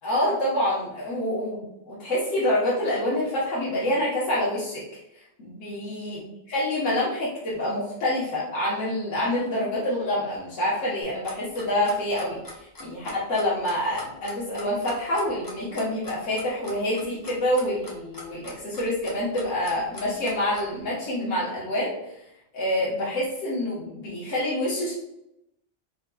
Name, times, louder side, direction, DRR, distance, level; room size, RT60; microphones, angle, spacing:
voice 1, 0.0-4.8 5.4-21.9 22.5-24.9, left 1 dB, 85° left, -8 dB, 1.5 m, -27 dB
Clock, 11.0-20.7, left 2 dB, 20° left, 0.7 m, -41 dB
4.3 x 4.0 x 2.2 m, 0.84 s
omnidirectional pair, 1.3 m